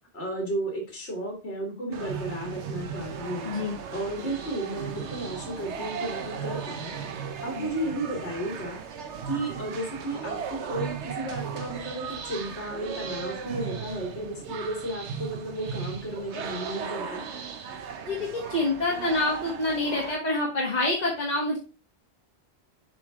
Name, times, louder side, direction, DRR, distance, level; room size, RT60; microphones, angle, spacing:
voice 1, 0.1-3.5 3.9-7.0 7.4-8.8 9.3-17.2, right 1 dB, 65° left, 0 dB, 2.1 m, -33 dB
sound 1, 1.9-20.1, right 7 dB, 80° right, 1.1 m, -36 dB
voice 2, 3.4-3.8 7.6-7.7 18.1-21.6, left 2 dB, 40° left, -3 dB, 1.6 m, -27 dB
7.5 x 4.2 x 3.5 m, 0.32 s
omnidirectional pair, 1.1 m